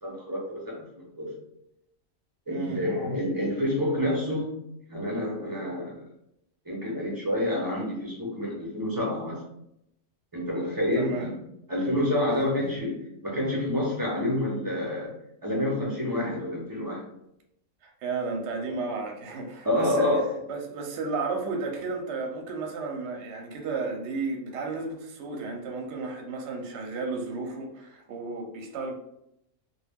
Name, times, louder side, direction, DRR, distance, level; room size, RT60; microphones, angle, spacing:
voice 1, 0.0-1.3 2.5-4.6 4.9-6.0 6.7-9.4 10.3-11.4 11.7-15.1 15.4-17.0 19.6-20.3, left 1 dB, 35° right, -5 dB, 0.3 m, -28 dB
voice 2, 2.5-2.8 11.0-11.3 12.4-12.5 17.8-20.2 20.5-28.9, right 4 dB, 60° right, 2 dB, 0.7 m, -33 dB
2.2 x 2.2 x 3.4 m, 0.77 s
omnidirectional pair, 1.5 m